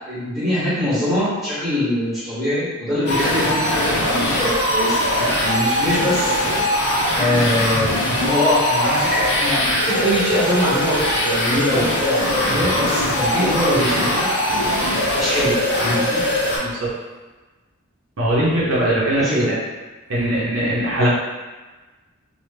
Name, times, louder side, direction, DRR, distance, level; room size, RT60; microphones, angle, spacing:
voice 1, 0.1-6.3 7.1-14.3 15.2-16.2 19.2-19.5 20.1-20.4 20.9-21.1, left 1 dB, ahead, -12 dB, 1.4 m, -23 dB
sound 1, 3.1-16.6, equal, 50° left, 0.8 m, -21 dB
voice 2, 16.6-16.9 18.2-19.6 20.1-21.1, right 1 dB, 70° right, -6 dB, 0.7 m, -20 dB
3.1 x 2.2 x 3.2 m, 1.3 s
head